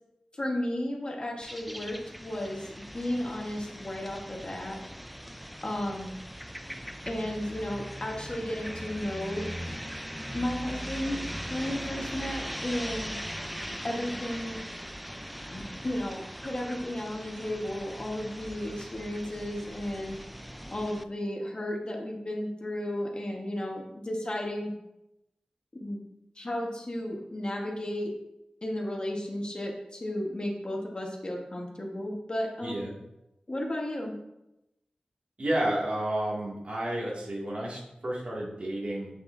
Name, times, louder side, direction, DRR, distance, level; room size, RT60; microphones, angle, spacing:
voice 1, 0.3-4.8 5.6-6.1 7.0-9.5 10.3-11.2 11.5-13.1 13.8-14.6 15.5-20.2 20.7-24.7 25.7-26.0 26.4-28.1 28.6-32.8 33.5-34.1, left 1 dB, 40° left, 0 dB, 1.4 m, -34 dB
sound 1, 1.4-21.0, equal, ahead, 0.3 m, -40 dB
voice 2, 32.6-32.9 35.4-39.1, right 1 dB, 60° right, -5 dB, 2.3 m, -31 dB
7.8 x 6.9 x 2.7 m, 0.89 s
wide cardioid pair, 70°, 2 cm